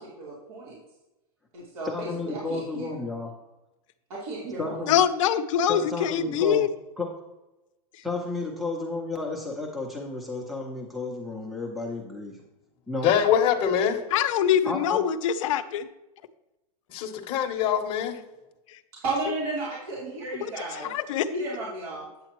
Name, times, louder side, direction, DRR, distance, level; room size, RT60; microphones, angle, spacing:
voice 1, 0.2-0.8 1.5-3.0 4.1-5.0 18.9-20.9 21.3-22.1, right 2 dB, 70° right, -6 dB, 3.1 m, -33 dB
voice 2, 1.8-3.3 4.6-4.9 5.7-6.7 7.0-7.1 8.0-12.4 12.9-13.2 14.6-15.0, left 3 dB, ahead, 1 dB, 0.7 m, -32 dB
voice 3, 4.9-6.7 14.1-15.9 18.7-18.8 20.4-20.5 20.8-21.3, left 9 dB, 55° left, 11 dB, 0.7 m, -24 dB
voice 4, 13.0-14.0 16.9-18.2, left 8 dB, 30° left, 2 dB, 0.9 m, -23 dB
9.1 x 7.7 x 3.0 m, 0.99 s
supercardioid pair, 160°, 19 cm